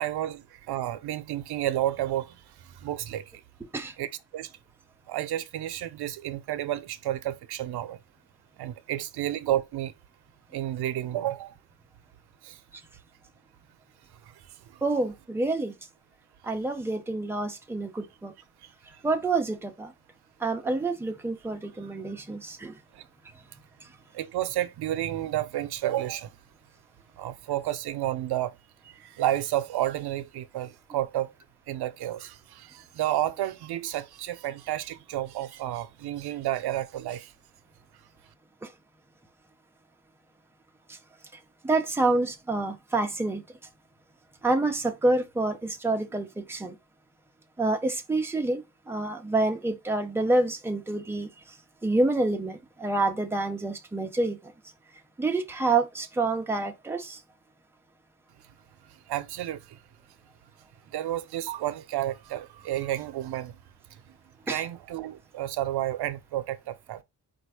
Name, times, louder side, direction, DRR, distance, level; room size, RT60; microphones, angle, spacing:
voice 1, 0.0-3.2 4.0-4.5 5.1-8.0 8.6-9.9 10.5-11.6 12.4-12.6 14.2-14.3 14.6-14.8 18.6-18.7 22.9-23.0 24.1-26.3 27.2-28.6 29.0-31.3 31.7-37.3 59.1-59.8 60.9-63.6 64.5-67.0, right 13 dB, 80° right, 0.7 m, -31 dB
voice 2, 14.8-15.7 16.4-18.3 19.0-19.9 20.4-22.7 41.6-43.4 44.4-46.7 47.6-48.6 48.9-51.3 51.8-54.4 55.2-57.2 64.5-64.6, right 2 dB, 5° right, 0.5 m, -27 dB
4.4 x 2.5 x 4.7 m
wide cardioid pair, 170°, 38 cm